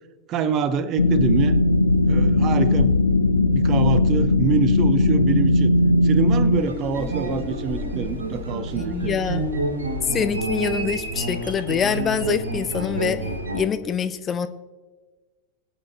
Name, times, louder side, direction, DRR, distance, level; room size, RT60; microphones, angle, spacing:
voice 1, 0.3-1.6 2.1-3.2 3.5-5.7 6.0-9.3, right 6 dB, 35° right, 15 dB, 0.8 m, -26 dB
sound 1, 1.0-6.6, left 2 dB, 75° left, 0.6 m, -18 dB
sound 2, 6.6-13.6, right 1 dB, 70° right, 2.8 m, -28 dB
voice 2, 8.8-9.4 10.1-13.2 13.5-14.5, left 7 dB, 25° left, 12 dB, 0.5 m, -25 dB
20.5 x 8.6 x 2.9 m, 1.3 s
figure-of-eight pair, 90°, 0 cm